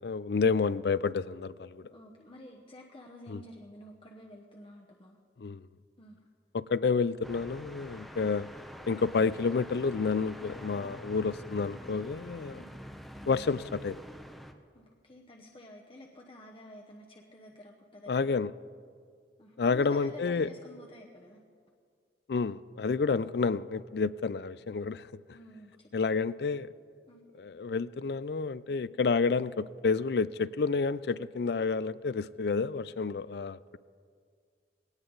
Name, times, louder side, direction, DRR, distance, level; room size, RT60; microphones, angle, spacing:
voice 1, 0.0-1.8 3.3-3.4 5.4-5.6 6.5-8.5 8.9-12.6 13.3-14.0 18.1-18.5 19.6-20.5 22.3-25.1 25.9-26.7 27.4-33.8, left 4 dB, 60° left, 0.4 m, -29 dB
voice 2, 1.9-5.2 6.0-6.2 12.5-12.7 14.7-18.3 19.4-21.4 25.3-25.9 27.1-27.2, left 1 dB, 30° left, 1.0 m, -50 dB
sound 1, 7.2-14.5, equal, ahead, 0.7 m, -46 dB
20.5 x 18.0 x 4.0 m
head